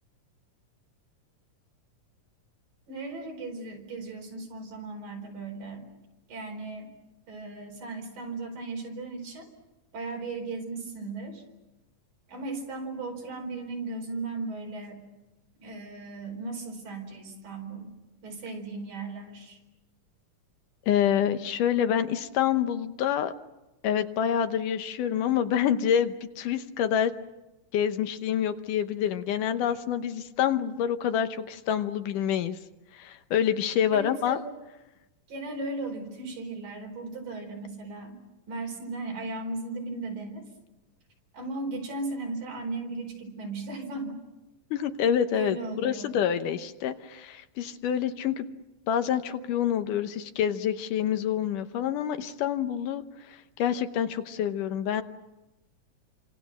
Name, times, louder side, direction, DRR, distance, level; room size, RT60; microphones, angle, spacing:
voice 1, 2.9-5.9 6.3-6.9 7.3-9.5 9.9-11.4 12.3-15.0 15.6-17.9 18.2-19.6 33.9-34.4 35.3-38.2 38.5-40.4 41.3-44.2 45.3-46.2, right 3 dB, 80° right, 2 dB, 6.2 m, -36 dB
voice 2, 20.9-23.3 23.8-27.1 27.7-32.6 32.9-34.4 44.7-48.5 48.9-55.0, left 9 dB, 75° left, 9 dB, 2.5 m, -27 dB
28.5 x 26.0 x 6.3 m, 1.0 s
omnidirectional pair, 3.9 m